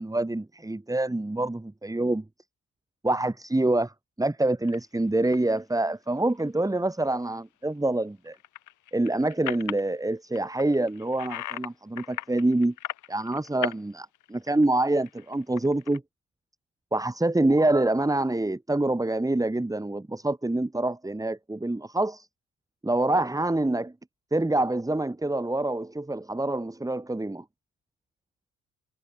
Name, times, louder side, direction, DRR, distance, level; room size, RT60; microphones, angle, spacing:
voice 1, 0.0-2.2 3.0-3.9 4.2-8.4 8.9-12.7 13.1-16.0 16.9-22.3 22.8-23.9 24.3-27.4, right 2 dB, 10° right, 4.7 m, -26 dB
sound 1, 4.6-4.8 5.3-5.6 6.0-6.4 8.3-9.9 10.3-11.7 12.0-13.8 14.1-16.0, left 13 dB, 80° left, 6.5 m, -37 dB
cardioid pair, 90°, 30 cm